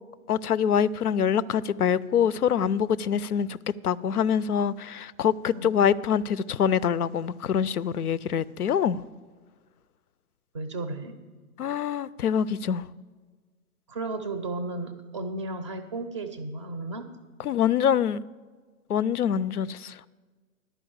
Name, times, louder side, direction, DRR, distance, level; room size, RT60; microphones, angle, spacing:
voice 1, 0.3-3.6 3.8-9.0 11.6-12.8 17.4-18.2 18.9-20.0, left 8 dB, 80° left, 0.5 m, -25 dB
voice 2, 10.5-11.2 13.9-17.1, right 2 dB, 20° right, 0.5 m, -34 dB
11.0 x 5.4 x 7.9 m
figure-of-eight pair, 130°, 44 cm